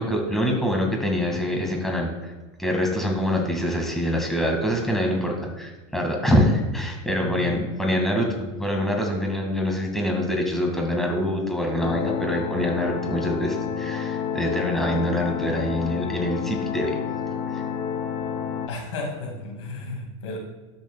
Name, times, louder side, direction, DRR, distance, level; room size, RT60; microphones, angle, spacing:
voice 1, 0.0-2.3 2.6-17.0 17.5-17.6, equal, ahead, 1 dB, 1.8 m, -25 dB
voice 2, 7.2-7.6 18.7-20.4, left 3 dB, 85° left, 1 dB, 2.1 m, -33 dB
sound 1, 11.8-18.7, left 7 dB, 40° left, 0.6 m, -29 dB
12.5 x 6.6 x 2.2 m, 1.2 s
supercardioid pair, 110°, 15 cm